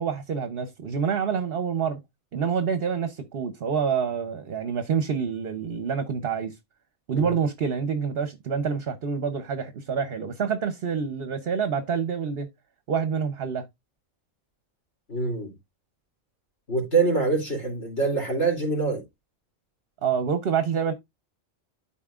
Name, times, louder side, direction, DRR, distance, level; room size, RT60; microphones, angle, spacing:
voice 1, 0.0-2.0 2.3-6.6 7.1-12.5 12.9-13.6 20.0-20.9, right 6 dB, 50° right, 0.9 m, -27 dB
voice 2, 15.1-15.5 16.7-19.0, right 3 dB, 60° left, 3.1 m, -25 dB
12.5 x 4.3 x 2.4 m
omnidirectional pair, 1.4 m